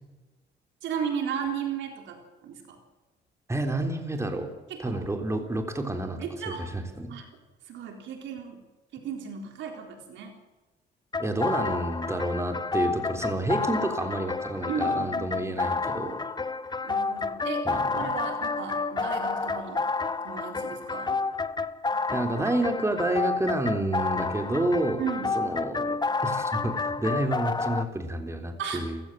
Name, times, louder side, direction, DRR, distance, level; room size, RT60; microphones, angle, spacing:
voice 1, 0.8-2.8 4.7-5.0 6.2-6.7 7.1-7.3 7.7-8.6 8.9-10.3 14.7-15.6 16.8-19.8 20.2-21.2 25.0-25.4 28.6-28.9, right 7 dB, 85° right, 4 dB, 3.9 m, -35 dB
voice 2, 3.5-4.5 4.8-6.2 6.5-7.1 11.2-16.2 17.7-18.1 22.1-25.0 25.4-29.0, right 1 dB, 15° right, 4 dB, 3.6 m, -29 dB
sound 1, 11.1-27.8, left 4 dB, 20° left, 1.1 m, -30 dB
29.5 x 16.5 x 7.6 m, 1.2 s
cardioid pair, 90°, 19 cm